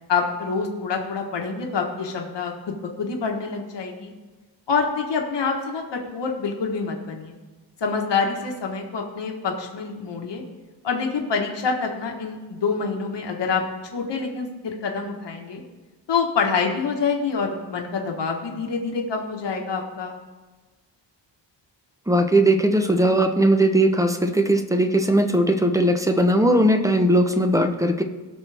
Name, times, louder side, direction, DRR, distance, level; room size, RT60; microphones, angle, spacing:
voice 1, 0.1-4.1 4.7-7.3 7.8-10.4 10.8-13.6 13.9-15.6 16.1-20.2, left 5 dB, 65° left, 1 dB, 1.4 m, -26 dB
voice 2, 22.1-28.0, right 1 dB, 5° right, 6 dB, 0.8 m, -19 dB
18.0 x 6.1 x 3.4 m, 1.3 s
wide cardioid pair, 105°, 45 cm